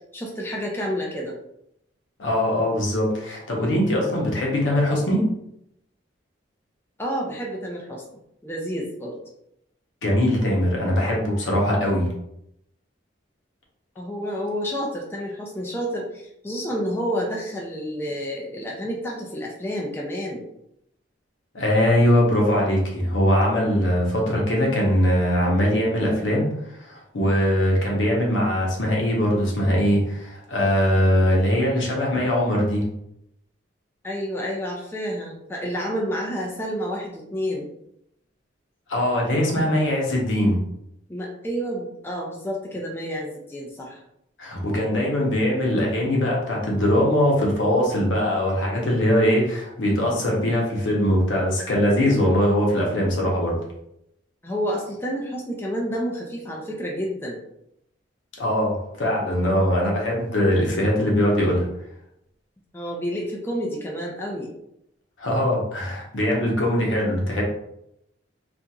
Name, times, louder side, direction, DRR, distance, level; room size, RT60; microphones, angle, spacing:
voice 1, 0.1-1.3 7.0-8.0 8.4-9.2 14.0-20.4 31.6-31.8 34.0-37.7 41.1-44.0 54.4-57.4 62.7-64.5, equal, 10° left, -1 dB, 0.3 m, -29 dB
voice 2, 2.2-5.3 10.0-12.1 21.5-26.5 26.8-32.8 38.9-40.6 44.4-53.6 58.4-61.7 65.2-67.4, equal, 80° left, -2 dB, 0.8 m, -21 dB
2.8 x 2.4 x 2.3 m, 0.79 s
head